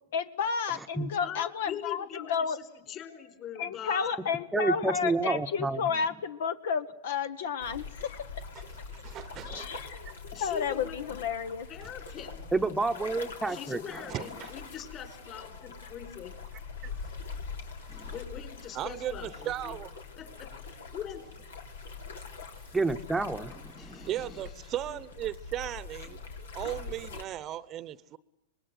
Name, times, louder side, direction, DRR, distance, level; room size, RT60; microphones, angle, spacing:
voice 1, 0.1-2.6 3.6-8.2 9.5-10.1 10.4-11.7, left 6 dB, 70° left, 1.3 m, -31 dB
voice 2, 1.2-4.2 10.3-11.0 11.7-12.5 13.5-16.4 18.1-19.7 20.2-21.3 23.7-24.4 24.9-25.0, left 9 dB, 35° left, 4.7 m, -42 dB
voice 3, 4.5-5.9 12.5-14.0 17.9-18.1 22.7-24.1, right 3 dB, 5° right, 0.9 m, -30 dB
sound 1, 7.6-27.2, left 5 dB, 90° left, 3.6 m, -44 dB
voice 4, 8.9-10.1 14.1-14.5 17.0-17.1 18.7-19.9 22.5-22.7 24.1-26.2 26.5-28.2, right 12 dB, 35° right, 0.9 m, -37 dB
25.0 x 20.5 x 8.0 m
hypercardioid pair, 125°, 0 cm